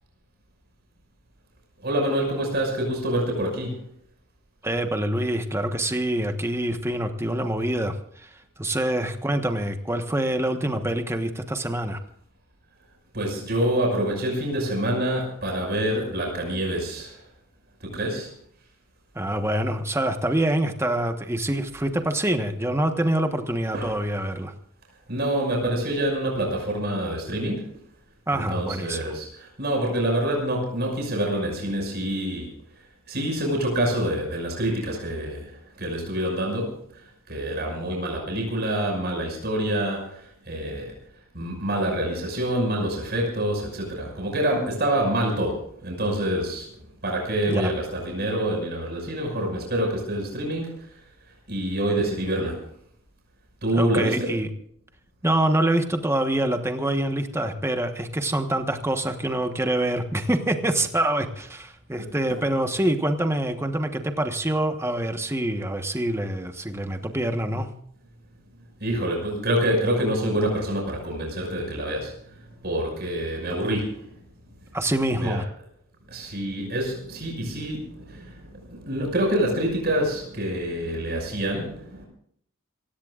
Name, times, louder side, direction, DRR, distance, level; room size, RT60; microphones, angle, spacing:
voice 1, 1.8-3.8 13.1-17.3 17.8-18.3 23.7-24.0 25.1-27.7 28.3-40.9 41.3-46.7 47.0-51.0 51.5-52.7 53.6-54.3 62.0-62.1 68.8-74.1 75.2-75.4 76.1-82.1, right 1 dB, 50° right, 0 dB, 6.0 m, -27 dB
voice 2, 4.6-12.0 19.1-24.5 28.3-29.1 47.5-47.7 53.8-54.5 55.2-67.7 74.7-75.4, right 1 dB, 10° right, 6 dB, 1.2 m, -25 dB
27.5 x 16.5 x 2.5 m, 0.65 s
head